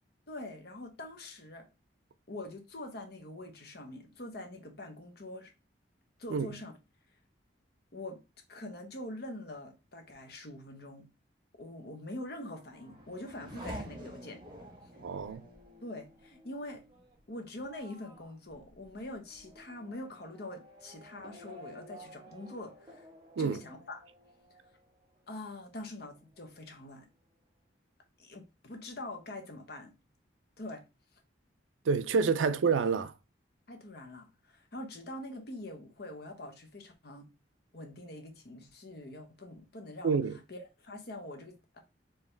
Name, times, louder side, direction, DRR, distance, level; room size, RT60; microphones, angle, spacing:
voice 1, 0.3-1.7 2.3-5.5 6.2-6.7 7.9-8.2 8.5-11.1 11.6-14.4 14.8-14.9 15.3-15.4 15.8-16.8 17.3-23.1 23.4-24.0 25.3-27.1 28.2-29.9 30.6-30.8 33.7-37.3 37.7-41.8, left 1 dB, 55° left, 1.0 m, -44 dB
Race car auto racing / Accelerating revving vroom, 12.2-25.4 25.8-26.5, equal, 25° right, 1.1 m, -51 dB
voice 2, 15.0-15.4 23.4-23.6 31.9-33.1 40.0-40.4, right 5 dB, 85° right, 0.4 m, -28 dB
4.7 x 2.9 x 3.2 m
head